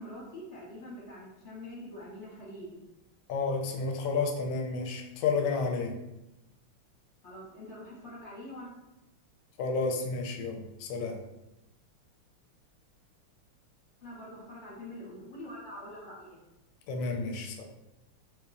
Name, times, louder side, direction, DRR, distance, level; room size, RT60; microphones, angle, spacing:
voice 1, 0.0-2.8 7.2-8.7 14.0-16.4, left 1 dB, 40° left, -6 dB, 1.1 m, -44 dB
voice 2, 3.3-6.0 9.6-11.2 16.9-17.7, left 4 dB, 75° left, 2 dB, 1.2 m, -31 dB
3.3 x 2.9 x 2.5 m, 0.95 s
omnidirectional pair, 2.4 m